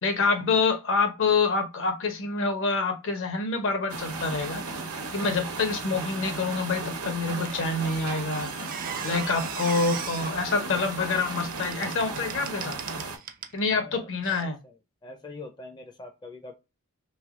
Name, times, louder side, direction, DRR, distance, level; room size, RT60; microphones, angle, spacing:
voice 1, 0.0-4.6 5.1-8.5 9.0-12.8 13.5-14.6, left 4 dB, 60° left, 0.7 m, -26 dB
sound 1, 3.9-13.2, right 3 dB, 80° right, 0.8 m, -35 dB
Squeak, 7.4-13.6 14.2-14.4, right 8 dB, 40° right, 0.4 m, -40 dB
voice 2, 13.7-14.8 15.0-16.6, left 2 dB, 20° left, 0.4 m, -44 dB
3.3 x 3.0 x 2.4 m
head